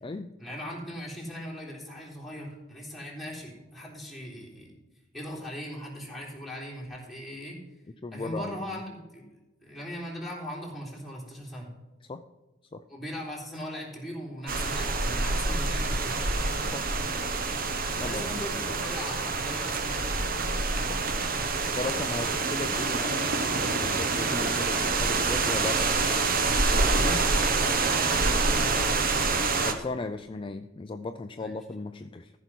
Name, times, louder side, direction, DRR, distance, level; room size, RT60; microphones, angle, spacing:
voice 1, 0.4-4.7 5.1-7.6 8.1-9.3 9.6-11.7 12.9-16.3 18.0-20.0 27.0-29.2 31.4-31.5, equal, ahead, -5 dB, 3.5 m, -39 dB
voice 2, 8.0-8.8 12.1-12.2 12.7-12.8 16.7-16.9 18.0-18.2 20.9-21.0 21.8-26.2 26.7-27.2 29.6-32.3, left 3 dB, 25° left, 8 dB, 0.4 m, -36 dB
sound 1, 14.5-29.7, right 3 dB, 45° right, 1.0 m, -27 dB
14.5 x 5.6 x 6.1 m, 1.1 s
head